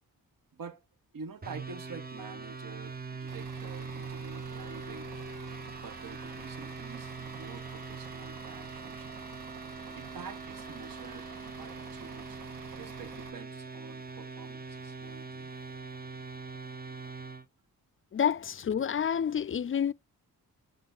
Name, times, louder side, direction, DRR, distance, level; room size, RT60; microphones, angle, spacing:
voice 1, 0.5-0.8 1.1-5.1 5.8-9.2 9.8-12.4 12.8-15.5 18.3-18.4, right 5 dB, 60° right, 1.1 m, -47 dB
sound 1, 1.4-17.4, right 4 dB, 25° right, 0.7 m, -42 dB
Bus / Idling, 3.3-13.3, right 7 dB, 85° right, 0.9 m, -49 dB
voice 2, 18.1-19.9, left 8 dB, 35° left, 0.4 m, -29 dB
8.0 x 3.8 x 3.8 m
cardioid pair, 60°, 37 cm